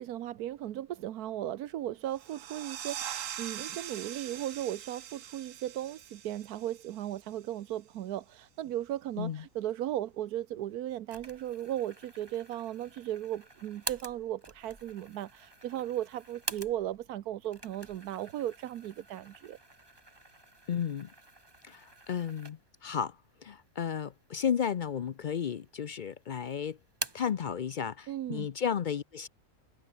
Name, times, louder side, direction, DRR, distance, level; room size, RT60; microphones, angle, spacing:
voice 1, 0.0-19.6 28.1-28.5, right 12 dB, 85° right, 1.3 m, -36 dB
sound 1, 2.1-7.5, right 10 dB, 65° right, 1.2 m, -42 dB
sound 2, 11.1-17.1 17.4-22.9 23.3-23.4 24.2-24.9 25.2-26.0 26.3-27.4, right 2 dB, 15° right, 1.8 m, -45 dB
voice 2, 20.7-21.1 21.6-23.2 23.4-26.8 27.1-29.3, left 7 dB, 65° left, 0.4 m, -33 dB
omnidirectional pair, 1.6 m